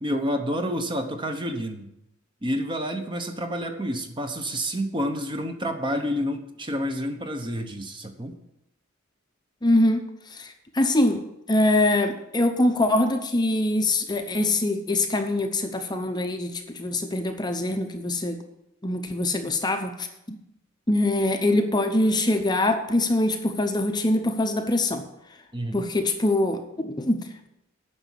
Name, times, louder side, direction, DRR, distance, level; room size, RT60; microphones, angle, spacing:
voice 1, 0.0-1.9 2.4-8.4 25.5-25.9, equal, 25° right, 6 dB, 1.0 m, -29 dB
voice 2, 9.6-10.0 10.3-11.2 11.5-18.4 18.8-20.4 20.9-25.0 25.7-27.5, left 1 dB, 20° left, 6 dB, 0.8 m, -23 dB
9.9 x 6.1 x 8.3 m, 0.85 s
head